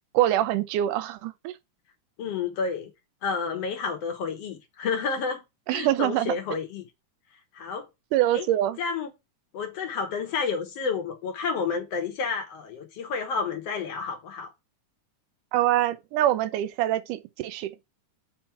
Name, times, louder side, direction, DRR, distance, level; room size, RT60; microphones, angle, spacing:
voice 1, 0.1-1.6 5.7-6.4 8.1-8.8 15.5-17.7, right 13 dB, 90° right, 2.2 m, -24 dB
voice 2, 2.2-2.9 3.2-5.4 5.7-6.9 7.5-7.9 8.3-8.5 8.8-9.1 9.5-14.5, left 5 dB, 60° left, 2.1 m, -30 dB
5.7 x 4.4 x 5.8 m
omnidirectional pair, 3.6 m